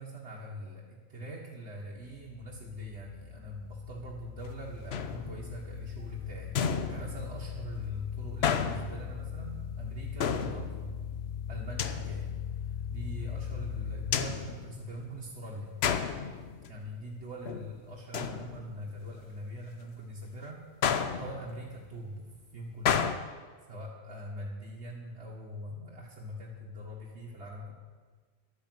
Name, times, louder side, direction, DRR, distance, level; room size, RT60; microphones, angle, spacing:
voice 1, 0.0-6.6 6.9-10.9 11.5-15.8 16.7-20.7 21.2-23.2 23.7-27.7, equal, 80° right, -4 dB, 1.9 m, -42 dB
sound 1, 2.0-14.2, left 8 dB, 50° left, 0.7 m, -39 dB
sound 2, 4.9-5.7 6.6-7.6 8.4-9.4 10.2-11.1 11.8-12.5 14.1-15.3 15.8-16.9 17.2-17.7 18.1-19.0 20.8-21.8 22.9-23.1, left 7 dB, 70° left, 1.0 m, -32 dB
12.0 x 9.5 x 7.8 m, 1.5 s
omnidirectional pair, 1.1 m